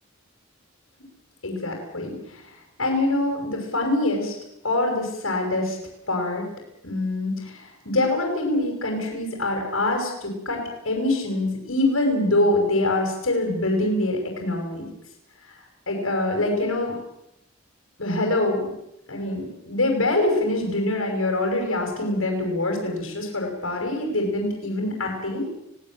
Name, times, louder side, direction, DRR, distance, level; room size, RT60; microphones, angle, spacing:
voice 1, 1.4-2.5 2.8-4.3 4.6-5.8 6.1-6.5 6.8-10.6 10.8-14.9 15.4-15.5 15.9-16.9 18.0-18.7 19.1-25.5, left 2 dB, 75° left, 1 dB, 5.9 m, -24 dB
24.5 x 18.0 x 7.5 m, 0.81 s
head